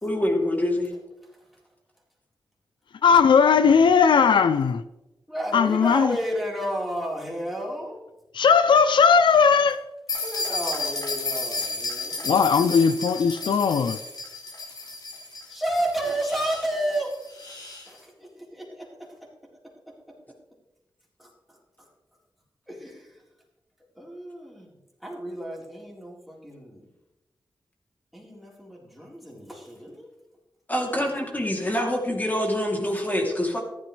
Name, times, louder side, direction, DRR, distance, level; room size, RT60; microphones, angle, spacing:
voice 1, 0.0-0.9 30.7-33.6, left 1 dB, 20° left, 3.1 m, -25 dB
voice 2, 3.0-4.8 5.5-6.2 8.3-9.8 12.2-14.0, left 6 dB, 85° left, 0.5 m, -18 dB
voice 3, 5.3-8.0 10.2-12.3 15.5-17.2 17.9-18.9 21.2-21.3 21.8-21.9 22.7-23.2 24.0-24.7 25.0-26.9 28.1-30.1 31.0-31.2, right 1 dB, ahead, 4.2 m, -31 dB
sound 1, 10.1-17.9, left 3 dB, 60° left, 4.8 m, -33 dB
14.5 x 12.0 x 3.3 m
wide cardioid pair, 95°, 8 cm